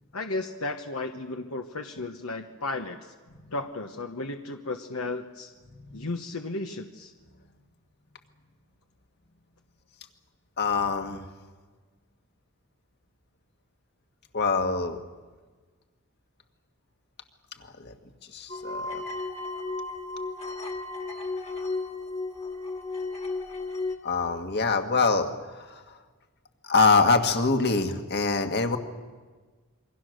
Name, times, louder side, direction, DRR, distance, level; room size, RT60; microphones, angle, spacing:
voice 1, 0.1-3.1 3.5-5.5 5.9-7.1, left 2 dB, 70° left, 4 dB, 1.2 m, -34 dB
voice 2, 5.7-6.1 10.6-11.2 14.3-15.0 17.6-17.9 18.3-19.0 24.0-26.0 26.6-28.8, left 4 dB, 45° left, 5 dB, 1.8 m, -25 dB
sound 1, 18.5-24.0, left 3 dB, 30° left, 2.0 m, -34 dB
27.5 x 24.0 x 6.5 m, 1.4 s
head